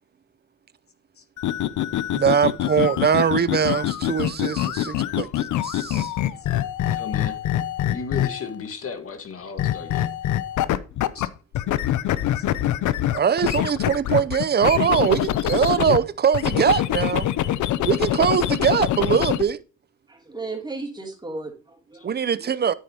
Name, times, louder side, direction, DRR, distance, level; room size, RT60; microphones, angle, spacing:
sound 1, 1.4-8.6 9.6-11.3 11.5-16.0 16.3-19.4, left 12 dB, 75° left, 0.7 m, -24 dB
voice 1, 2.1-6.1 13.1-17.3 17.8-19.6 22.0-22.7, right 7 dB, 35° right, 0.6 m, -22 dB
voice 2, 6.9-7.4 7.9-10.1 11.1-11.3 12.4-12.5 19.0-19.2, left 5 dB, 50° left, 1.8 m, -34 dB
voice 3, 20.1-22.4, right 3 dB, 15° right, 3.0 m, -35 dB
9.5 x 8.3 x 2.9 m
cardioid pair, 90°, 30 cm